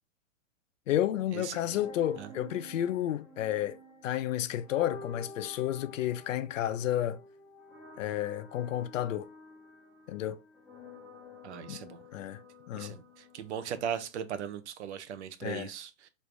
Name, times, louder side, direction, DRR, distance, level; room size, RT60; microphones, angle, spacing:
voice 1, 0.9-3.8 4.0-7.2 8.0-9.3 10.1-10.4 11.7-11.8 12.1-12.4 12.7-13.0 15.4-15.7, left 12 dB, 70° left, 0.5 m, -31 dB
sound 1, 1.6-14.5, left 2 dB, ahead, 0.5 m, -51 dB
voice 2, 11.4-12.0 12.7-16.1, right 8 dB, 60° right, 0.6 m, -38 dB
3.2 x 2.6 x 3.1 m
hypercardioid pair, 145°, 40 cm